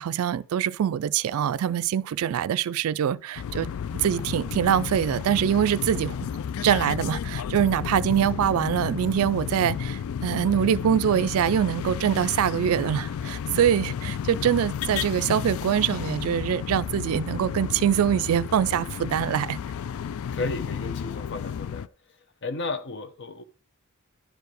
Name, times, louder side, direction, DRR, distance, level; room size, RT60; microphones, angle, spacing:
voice 1, 0.0-6.2 6.6-19.6, right 9 dB, 75° right, 0.3 m, -24 dB
sound 1, 3.3-21.9, left 8 dB, 75° left, 0.3 m, -32 dB
voice 2, 20.3-21.9 22.4-23.4, left 3 dB, 55° left, 0.8 m, -33 dB
11.0 x 4.6 x 4.9 m
head